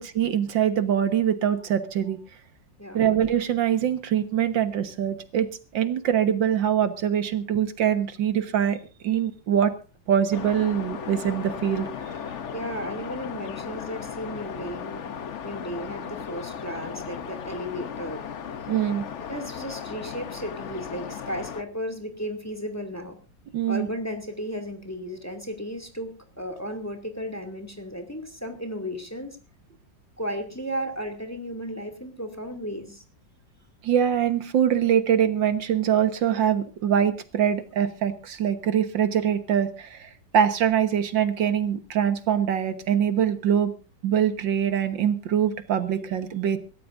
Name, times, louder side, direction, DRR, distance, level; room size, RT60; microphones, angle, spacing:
voice 1, 0.0-2.2 2.9-8.8 9.0-9.7 10.1-11.9 18.7-19.1 23.5-23.9 33.8-43.7 44.0-46.6, right 9 dB, 80° right, 10 dB, 2.0 m, -23 dB
voice 2, 2.8-3.1 12.5-15.1 15.4-18.2 19.3-23.2 23.7-29.4 30.2-33.0, equal, 10° left, 6 dB, 2.4 m, -34 dB
sound 1, 10.3-21.6, left 7 dB, 50° left, 1.0 m, -36 dB
26.0 x 13.5 x 2.6 m, 0.33 s
omnidirectional pair, 2.0 m